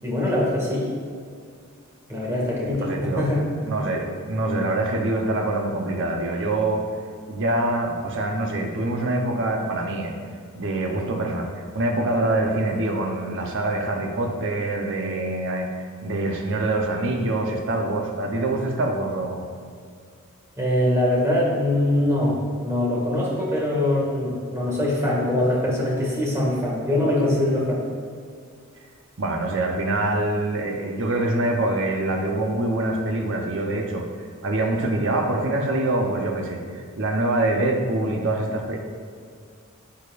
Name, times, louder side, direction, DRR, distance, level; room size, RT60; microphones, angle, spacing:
voice 1, 0.0-0.9 2.1-3.5 20.6-27.8, left 1 dB, 15° right, -5 dB, 2.0 m, -23 dB
voice 2, 2.8-3.3 3.7-6.9 7.3-10.2 10.5-19.4 29.2-38.8, right 2 dB, 60° right, 2 dB, 0.9 m, -25 dB
11.0 x 7.2 x 2.5 m, 2.1 s
head